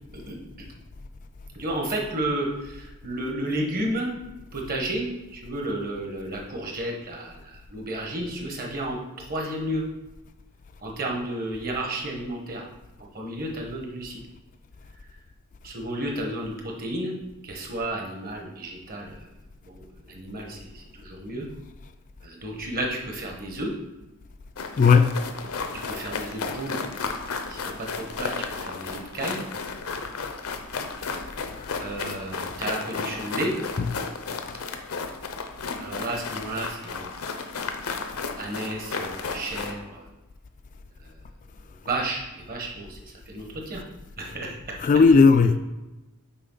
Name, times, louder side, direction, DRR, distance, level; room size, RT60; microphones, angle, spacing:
voice 1, 0.1-0.7 1.5-4.1 4.5-9.8 10.8-12.7 13.1-14.2 15.6-17.1 17.4-19.3 19.6-21.5 22.2-23.7 25.9-26.9 27.5-29.4 31.8-33.5 35.8-37.1 38.4-40.1 41.0-41.2 41.8-43.8 44.2-44.8, right 1 dB, 40° right, 1.2 m, -32 dB
sound 1, 24.6-39.7, left 4 dB, 70° left, 0.7 m, -33 dB
voice 2, 24.8-25.2 25.8-26.0 31.6-31.7 33.8-34.0 44.2-44.3 44.8-45.6, left 5 dB, 35° left, 0.3 m, -17 dB
6.7 x 4.7 x 3.9 m
head